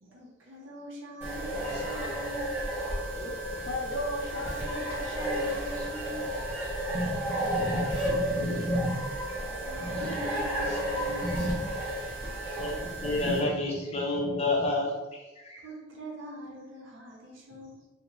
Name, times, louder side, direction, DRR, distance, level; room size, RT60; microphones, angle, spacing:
voice 1, 0.0-2.6 8.7-8.8 9.4-11.6 15.6-17.9, equal, 75° right, -2 dB, 0.7 m, -43 dB
sound 1, 1.2-13.4, right 1 dB, 10° right, 1.0 m, -32 dB
voice 2, 3.1-6.3, left 1 dB, 80° left, 0 dB, 0.6 m, -37 dB
voice 3, 6.9-9.4 9.8-10.2 11.3-11.6 12.6-15.6, left 1 dB, 35° left, -2 dB, 0.6 m, -31 dB
2.5 x 2.1 x 3.0 m, 1.2 s
head